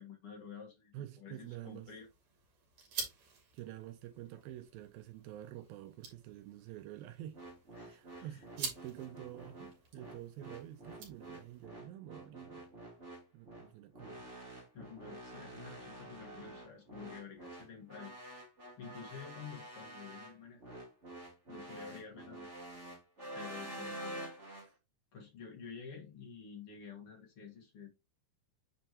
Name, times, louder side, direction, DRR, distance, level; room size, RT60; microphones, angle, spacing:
voice 1, 0.0-1.0 1.2-2.1 7.8-8.4 14.7-18.1 18.8-20.8 21.5-22.5 23.3-24.2 25.1-27.9, left 6 dB, 50° left, 1.7 m, -50 dB
voice 2, 0.9-1.9 3.5-7.4 7.7-12.7 13.3-14.3 24.6-24.8, right 13 dB, 80° right, 2.3 m, -48 dB
sound 1, 1.3-11.7, right 5 dB, 50° right, 3.3 m, -49 dB
sound 2, 7.3-24.7, right 1 dB, 20° right, 2.3 m, -48 dB
7.9 x 4.5 x 2.9 m
omnidirectional pair, 4.6 m